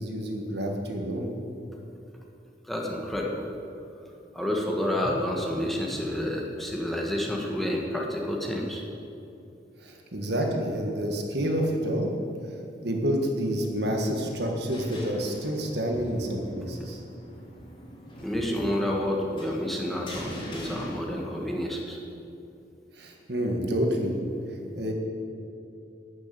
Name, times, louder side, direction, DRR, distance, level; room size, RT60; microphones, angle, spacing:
voice 1, 0.0-1.3 9.8-12.1 12.8-17.0 23.0-24.2 24.7-24.9, equal, 65° right, 2 dB, 1.7 m, -28 dB
voice 2, 2.7-3.4 4.3-8.8 18.2-22.0, left 1 dB, ahead, -2 dB, 1.5 m, -29 dB
sound 1, 14.3-21.7, equal, 30° left, 3.0 m, -43 dB
12.0 x 6.6 x 8.8 m, 2.7 s
head